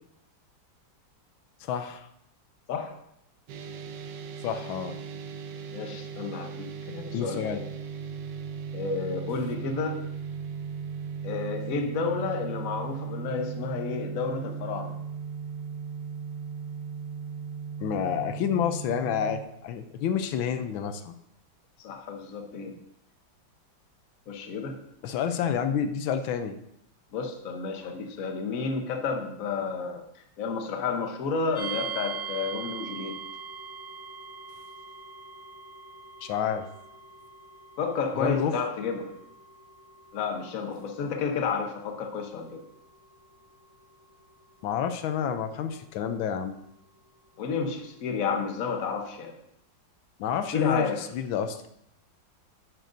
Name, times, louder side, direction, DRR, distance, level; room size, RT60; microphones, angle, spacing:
voice 1, 1.6-2.1 4.4-4.9 7.1-7.6 17.8-21.1 25.0-26.6 36.2-36.6 38.2-38.5 44.6-46.5 50.2-50.9 51.1-51.6, left 8 dB, 85° left, 9 dB, 1.4 m, -29 dB
sound 1, 3.5-19.4, right 6 dB, 70° right, 1.3 m, -37 dB
voice 2, 5.7-7.7 8.7-10.0 11.2-15.0 21.8-22.7 24.3-24.8 27.1-30.0 30.4-33.2 37.8-39.1 40.1-42.6 47.4-49.3 50.5-51.0, left 5 dB, 50° left, 4 dB, 1.2 m, -31 dB
sound 2, 31.5-46.4, right 6 dB, 20° left, 1.7 m, -43 dB
10.5 x 9.0 x 2.6 m, 0.78 s
omnidirectional pair, 2.1 m